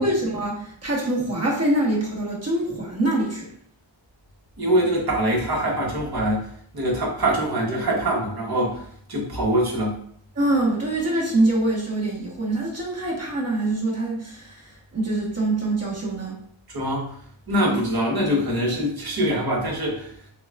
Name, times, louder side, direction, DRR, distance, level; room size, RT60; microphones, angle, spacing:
voice 1, 0.0-3.5 10.3-16.4, right 1 dB, 30° right, -4 dB, 1.2 m, -24 dB
voice 2, 4.6-6.4 6.7-8.8 9.1-9.9 16.7-17.0 17.5-20.1, right 1 dB, 50° right, -3 dB, 1.2 m, -23 dB
6.1 x 2.3 x 2.4 m, 0.63 s
wide cardioid pair, 130°, 48 cm